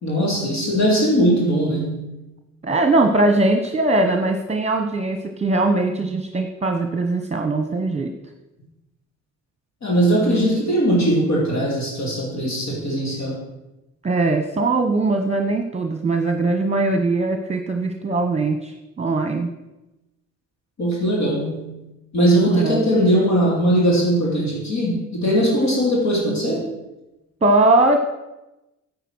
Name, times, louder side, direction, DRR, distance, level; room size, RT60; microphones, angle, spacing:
voice 1, 0.0-2.0 9.8-13.4 20.8-21.7 22.1-26.7, equal, 65° left, -2 dB, 3.4 m, -20 dB
voice 2, 2.6-8.1 14.0-19.5 22.5-22.8 27.4-28.0, right 2 dB, 20° right, 5 dB, 1.1 m, -20 dB
9.1 x 8.3 x 6.3 m, 0.98 s
cardioid pair, 90°, 30 cm